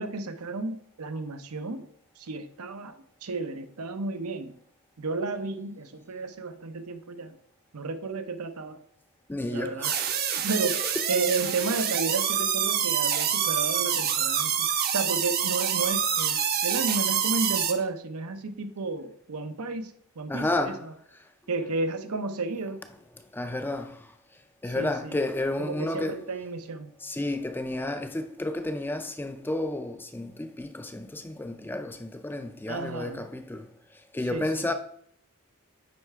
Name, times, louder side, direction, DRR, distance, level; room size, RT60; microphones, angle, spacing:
voice 1, 0.0-1.9 2.2-4.5 5.0-7.4 7.7-8.8 9.5-9.9 10.4-20.9 21.5-22.8 24.6-25.2 25.6-26.9 32.7-33.3 34.3-34.7, right 3 dB, 80° right, 0.7 m, -32 dB
voice 2, 9.3-10.0 10.3-10.4 20.3-20.8 23.3-24.0 24.6-26.2 27.0-33.7 34.1-34.7, left 2 dB, 10° left, 0.4 m, -31 dB
sound 1, 9.8-17.7, right 8 dB, 45° right, 0.7 m, -26 dB
9.5 x 3.2 x 4.6 m
head